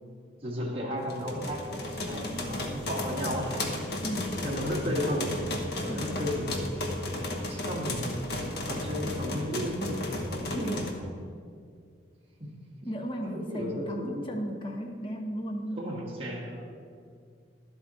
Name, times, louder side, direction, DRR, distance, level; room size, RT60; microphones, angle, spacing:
voice 1, 0.4-3.5 4.4-5.4 5.8-6.6 7.5-10.0 10.3-11.1 12.4-12.5 13.2-14.2 15.7-16.6, equal, 30° right, -3 dB, 1.8 m, -34 dB
sound 1, 1.1-10.9, left 1 dB, 60° left, 1.1 m, -34 dB
voice 2, 4.0-4.3 5.9-6.2 10.5-10.7 12.8-15.8, equal, 25° left, 3 dB, 0.9 m, -35 dB
11.5 x 7.7 x 4.3 m, 2.2 s
head